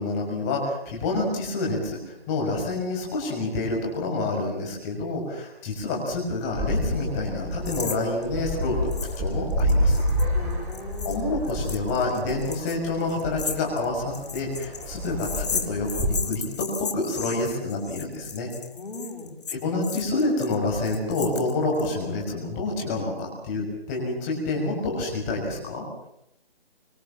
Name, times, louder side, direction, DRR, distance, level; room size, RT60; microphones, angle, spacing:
voice 1, 0.0-10.0 11.0-18.5 19.5-25.8, left 2 dB, 15° left, -1 dB, 6.3 m, -28 dB
sound 1, 6.5-16.2, equal, 10° right, 3.3 m, -29 dB
sound 2, 7.7-8.0 8.2-8.3 8.9-9.2 9.5-21.9, left 6 dB, 40° left, 2.3 m, -35 dB
voice 2, 10.3-11.3 18.7-19.4, left 2 dB, 75° left, -6 dB, 6.1 m, -39 dB
25.5 x 22.0 x 7.3 m, 0.77 s
hypercardioid pair, 165°, 30 cm